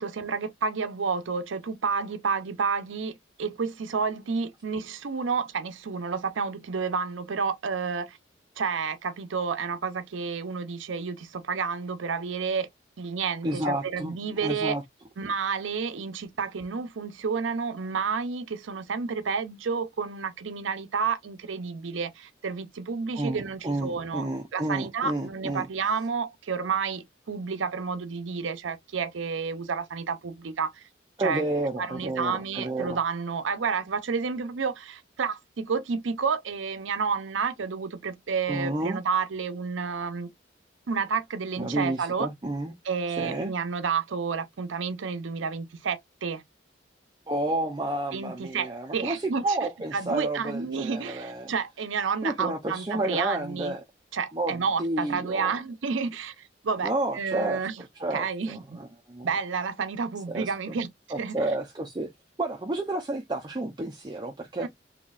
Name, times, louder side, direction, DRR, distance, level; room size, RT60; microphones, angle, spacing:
voice 1, 0.0-8.2 8.6-12.7 13.0-14.8 15.2-24.3 24.5-30.8 31.2-31.4 31.8-40.3 40.9-42.3 42.8-46.4 48.1-49.6 49.9-53.7 54.1-57.7 58.1-58.8 59.2-60.9 61.2-61.4 64.6-64.7, right 5 dB, 90° right, 0.6 m, -30 dB
voice 2, 13.4-14.2 14.4-14.8 23.1-25.7 31.2-33.0 38.5-39.0 41.6-42.7 43.1-43.5 47.3-51.5 52.2-53.8 54.3-55.5 56.8-57.7 58.0-59.3 60.3-60.7 61.1-62.1 62.4-64.7, right 2 dB, 25° right, 0.5 m, -30 dB
4.0 x 2.8 x 2.4 m
head